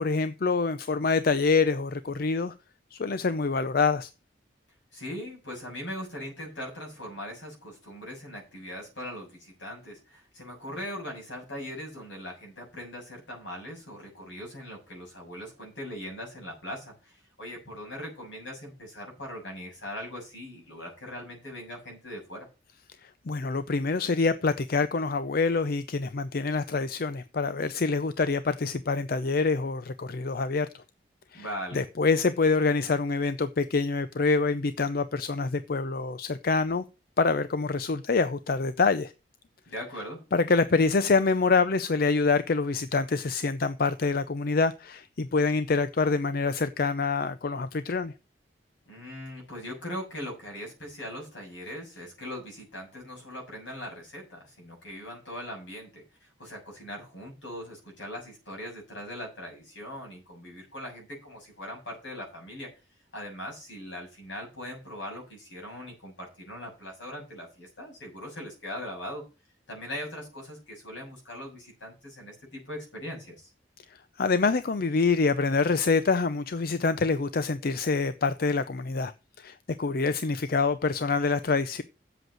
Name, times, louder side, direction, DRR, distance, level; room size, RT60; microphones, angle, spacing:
voice 1, 0.0-2.5 2.9-4.1 23.0-30.7 31.3-31.4 31.7-36.8 37.2-39.1 40.3-48.1 74.2-79.1 79.4-81.8, left 4 dB, 50° left, 0.5 m, -26 dB
voice 2, 4.9-22.5 31.3-31.8 39.7-40.2 48.9-62.7 63.1-69.2 69.7-73.5, equal, 80° left, 6.9 m, -40 dB
8.0 x 7.8 x 6.4 m
head